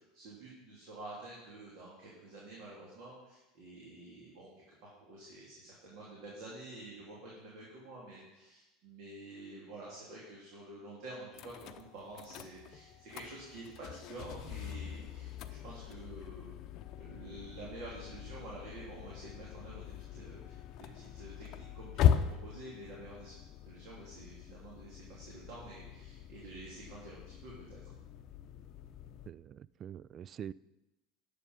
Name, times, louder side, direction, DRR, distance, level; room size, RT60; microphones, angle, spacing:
voice 1, 0.0-4.5 4.8-16.5 17.0-23.4 23.6-27.9, right 2 dB, 55° right, -5 dB, 3.0 m, -49 dB
sound 1, 11.3-29.3, left 10 dB, 50° left, 0.7 m, -39 dB
voice 2, 29.3-30.5, right 9 dB, 35° right, 20 dB, 0.3 m, -45 dB
11.0 x 7.2 x 5.4 m, 1.0 s
figure-of-eight pair, 75°, 0 cm